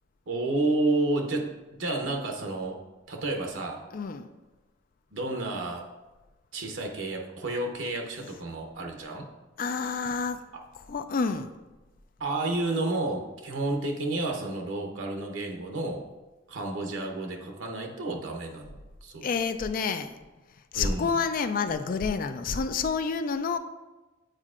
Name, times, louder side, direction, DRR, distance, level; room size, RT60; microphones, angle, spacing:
voice 1, 0.3-1.5 1.8-2.8 3.1-3.8 5.1-5.8 6.5-9.2 12.2-16.0 16.5-19.3 20.7-21.1, right 2 dB, 85° right, 2 dB, 0.8 m, -30 dB
voice 2, 3.9-4.3 9.6-10.4 10.9-11.5 19.2-20.1 20.7-23.6, left 5 dB, 45° left, 9 dB, 0.4 m, -28 dB
8.9 x 4.3 x 2.5 m, 1.1 s
head